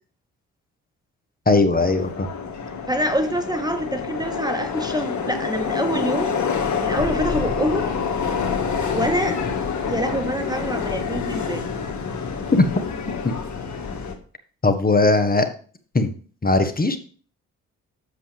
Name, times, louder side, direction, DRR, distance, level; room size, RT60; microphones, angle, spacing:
voice 1, 1.5-2.3 12.5-12.7 13.2-13.3 14.6-15.5 15.9-16.1 16.4-17.0, left 3 dB, 25° left, 9 dB, 1.4 m, -18 dB
Subway metro underground, 1.8-14.1, left 6 dB, 50° left, 1.8 m, -27 dB
voice 2, 2.9-6.4 6.8-7.9 8.9-9.4 9.9-11.6, right 1 dB, 10° right, 6 dB, 1.0 m, -25 dB
8.1 x 7.2 x 3.4 m, 0.42 s
hypercardioid pair, 45°, 36 cm